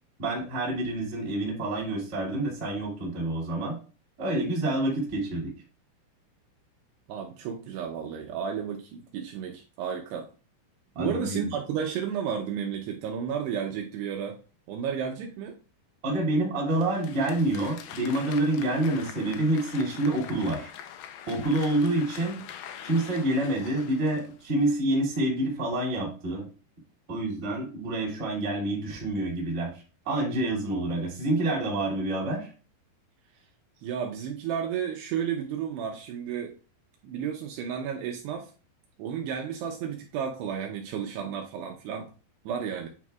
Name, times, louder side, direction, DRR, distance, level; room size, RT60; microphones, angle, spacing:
voice 1, 0.2-3.8 4.2-5.5 10.9-11.5 16.0-20.7 21.3-22.4 22.8-26.5 27.1-29.7 30.0-32.5, right 1 dB, 25° right, -3 dB, 1.5 m, -27 dB
voice 2, 7.1-10.3 11.0-14.4 14.7-15.6 33.8-36.6 37.0-38.5 39.0-42.1 42.5-42.9, right 8 dB, 80° right, 2 dB, 2.5 m, -32 dB
Applause, 16.7-24.8, left 9 dB, 90° left, 2.1 m, -44 dB
8.9 x 4.5 x 2.3 m, 0.36 s
omnidirectional pair, 5.2 m